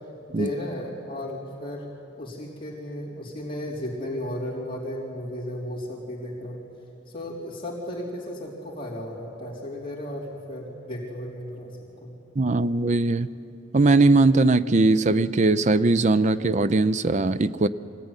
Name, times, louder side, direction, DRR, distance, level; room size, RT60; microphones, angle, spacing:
voice 1, 0.3-1.9 2.2-6.6 7.1-12.1, left 1 dB, 25° left, -5 dB, 3.7 m, -34 dB
voice 2, 12.4-13.3 13.7-17.7, right 2 dB, 40° right, 14 dB, 0.5 m, -20 dB
24.0 x 16.5 x 9.8 m, 2.8 s
head